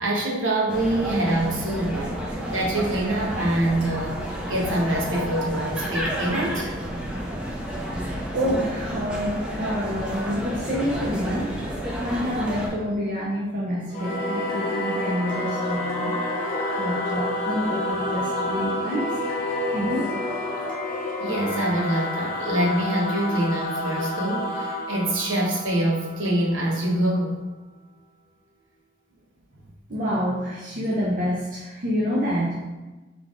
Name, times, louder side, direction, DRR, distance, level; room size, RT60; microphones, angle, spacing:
voice 1, 0.0-6.7 21.2-27.4, right 1 dB, 80° right, -2 dB, 1.1 m, -25 dB
sound 1, 0.7-12.7, equal, 5° right, 0.6 m, -30 dB
voice 2, 8.3-11.6 12.0-16.5 16.8-19.1 19.7-20.1 29.9-32.6, equal, 45° right, -6 dB, 0.7 m, -27 dB
Singing / Musical instrument, 13.9-26.8, left 1 dB, 45° left, 0.9 m, -29 dB
4.0 x 3.3 x 3.7 m, 1.2 s
head